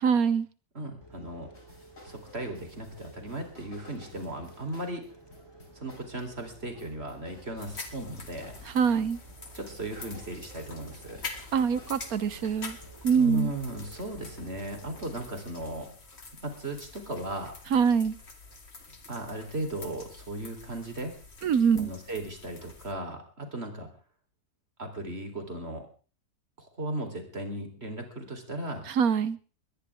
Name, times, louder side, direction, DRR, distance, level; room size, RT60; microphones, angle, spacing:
voice 1, 0.0-0.5 8.7-9.2 11.5-12.8 13.0-13.5 17.7-18.2 21.4-21.9 28.9-29.4, right 6 dB, 65° right, 15 dB, 1.4 m, -24 dB
voice 2, 0.7-1.5 2.0-5.0 5.7-8.5 9.5-11.2 13.1-15.9 16.4-17.5 19.1-21.1 21.8-23.9 24.8-25.9 26.6-28.9, right 1 dB, 40° right, 5 dB, 4.1 m, -36 dB
sound 1, 1.0-15.3, right 3 dB, 15° left, 4.6 m, -52 dB
sound 2, 1.5-12.9, left 2 dB, 85° left, 6.3 m, -55 dB
sound 3, 7.6-22.9, left 4 dB, 40° left, 2.3 m, -46 dB
21.5 x 18.5 x 3.6 m, 0.37 s
omnidirectional pair, 1.7 m